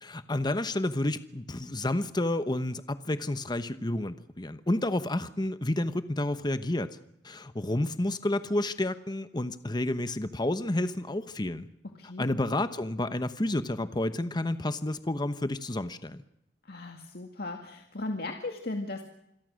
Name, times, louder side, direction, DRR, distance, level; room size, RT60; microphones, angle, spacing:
voice 1, 0.0-7.0 7.2-11.7 12.2-16.2, left 1 dB, 25° left, 11 dB, 1.0 m, -30 dB
voice 2, 11.8-12.3 16.6-19.0, left 2 dB, 60° left, 3 dB, 2.2 m, -37 dB
27.5 x 22.0 x 6.4 m, 0.79 s
head